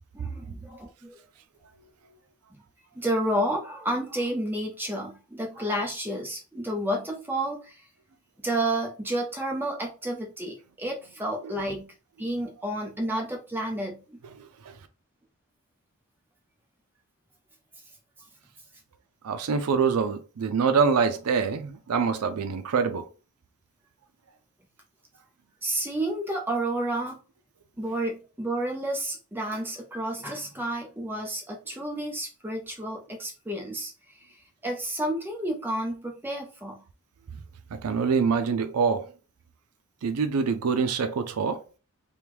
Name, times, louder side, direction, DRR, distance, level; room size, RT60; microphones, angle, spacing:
voice 1, 0.1-1.2 2.9-7.8 8.4-14.2 25.6-27.2 27.8-33.9 34.2-34.3 34.6-36.8, right 1 dB, 10° right, 0.6 m, -30 dB
voice 2, 19.2-23.1 37.8-39.1 40.0-41.6, right 5 dB, 85° right, 0.5 m, -25 dB
3.4 x 2.2 x 3.0 m
head